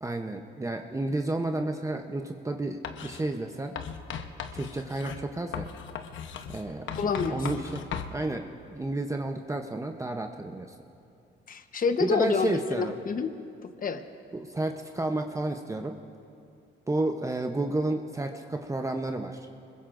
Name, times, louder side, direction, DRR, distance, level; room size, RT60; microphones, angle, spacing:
voice 1, 0.0-3.7 4.5-5.7 6.5-6.8 7.3-7.9 8.1-10.7 12.0-12.9 14.3-16.0 16.9-19.5, right 2 dB, 15° right, 4 dB, 0.8 m, -31 dB
Writing, 2.8-3.2 3.8-8.1, left 7 dB, 75° left, 1.0 m, -37 dB
voice 2, 6.9-7.5 11.5-13.3 13.6-14.0, left 5 dB, 45° left, 8 dB, 1.1 m, -28 dB
25.5 x 21.5 x 2.6 m, 2.6 s
cardioid pair, 90°, 20 cm